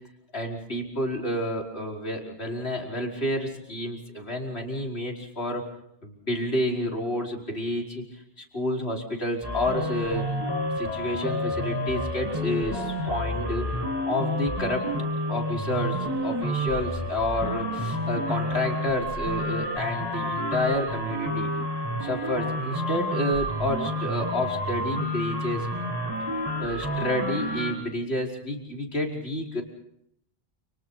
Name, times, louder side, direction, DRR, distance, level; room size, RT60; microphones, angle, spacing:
voice 1, 0.3-5.6 6.0-8.0 8.4-10.2 10.8-13.7 14.1-14.8 15.3-21.5 22.0-25.7 26.6-29.6, left 1 dB, 80° left, 0 dB, 5.2 m, -29 dB
sound 1, 9.4-27.7, equal, 20° right, 7.2 m, -29 dB
30.0 x 29.5 x 4.1 m, 0.74 s
omnidirectional pair, 1.1 m